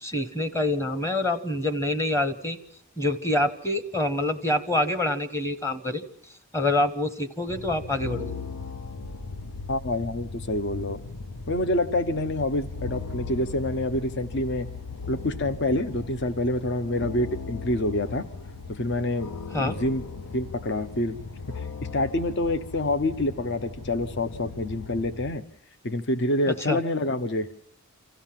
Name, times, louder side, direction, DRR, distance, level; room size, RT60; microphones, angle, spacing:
voice 1, 0.0-2.6 3.0-6.0 6.5-8.3 19.5-19.8 26.5-26.8, left 1 dB, 10° left, 10 dB, 1.0 m, -26 dB
sound 1, 7.5-25.4, left 4 dB, 85° left, 0.8 m, -38 dB
voice 2, 9.7-11.0 11.5-14.7 15.1-18.2 18.7-19.3 19.6-20.0 20.3-21.2 21.9-25.4 25.8-27.5, left 1 dB, 50° left, 13 dB, 0.8 m, -27 dB
26.0 x 14.5 x 7.4 m, 0.73 s
head